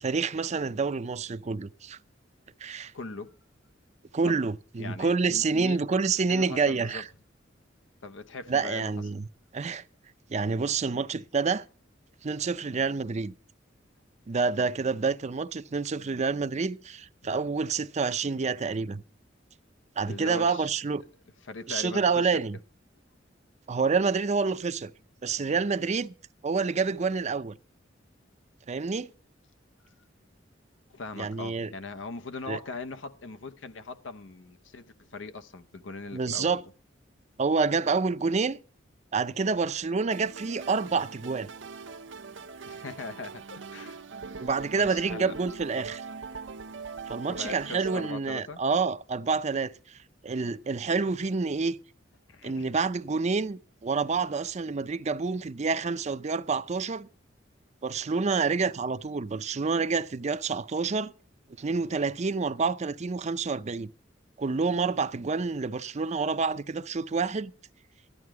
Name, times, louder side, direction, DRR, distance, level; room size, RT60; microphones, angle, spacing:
voice 1, 0.0-2.0 2.6-2.9 4.1-7.1 8.5-9.2 9.5-9.8 10.3-11.6 12.2-13.3 14.3-19.0 20.0-21.0 21.7-22.6 23.7-24.9 25.2-26.1 26.4-27.5 28.7-29.1 31.2-31.7 32.5-32.6 36.1-36.6 37.4-38.6 39.1-41.5 44.4-46.0 47.1-49.7 50.2-51.8 52.4-57.1 57.8-61.1 61.6-63.9 64.4-67.5, right 4 dB, 40° right, 0.5 m, -28 dB
voice 2, 2.9-3.4 4.2-4.4 4.8-5.8 6.3-7.0 8.0-9.0 17.2-17.4 20.1-20.8 21.5-22.6 30.9-36.6 42.7-44.0 44.7-45.4 47.3-48.6 52.3-52.8, left 3 dB, 85° left, 0.8 m, -40 dB
sound 1, 40.1-48.1, right 4 dB, 80° right, 0.8 m, -41 dB
14.0 x 11.0 x 4.7 m
head